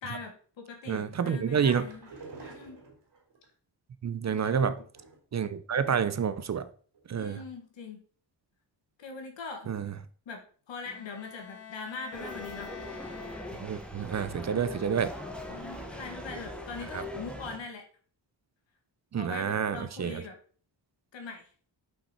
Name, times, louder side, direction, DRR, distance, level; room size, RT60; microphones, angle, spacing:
voice 1, 0.0-2.1 2.4-2.8 4.3-4.7 7.2-8.0 9.0-9.7 10.3-12.7 14.5-14.8 15.5-17.8 19.2-20.4 21.1-21.5, left 4 dB, 90° left, 1.9 m, -42 dB
voice 2, 0.9-1.9 4.0-4.8 5.3-6.7 7.1-7.4 9.7-9.9 13.6-15.1 16.9-17.0 19.1-20.2, right 7 dB, 40° right, 0.5 m, -29 dB
sound 1, 1.4-3.5 4.5-5.4 5.8-6.2 6.5-6.6 6.9-7.0, right 3 dB, 70° right, 3.3 m, -49 dB
Bowed string instrument, 10.9-14.0, left 7 dB, 35° left, 1.1 m, -47 dB
sound 2, 12.1-17.6, left 1 dB, ahead, 1.1 m, -41 dB
5.7 x 5.6 x 4.3 m
wide cardioid pair, 130°, 44 cm